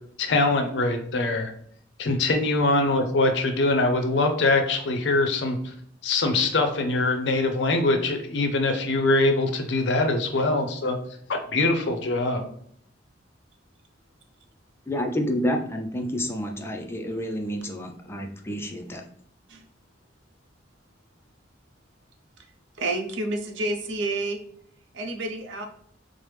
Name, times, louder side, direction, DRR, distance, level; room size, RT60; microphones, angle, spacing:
voice 1, 0.2-1.5 2.0-5.7 6.0-11.0 11.3-12.5, left 2 dB, 65° left, 5 dB, 0.5 m, -23 dB
voice 2, 14.9-19.0, equal, 15° left, 3 dB, 0.4 m, -29 dB
voice 3, 22.8-24.4 24.9-25.7, right 2 dB, 80° right, 4 dB, 0.5 m, -29 dB
3.2 x 2.0 x 3.0 m, 0.65 s
head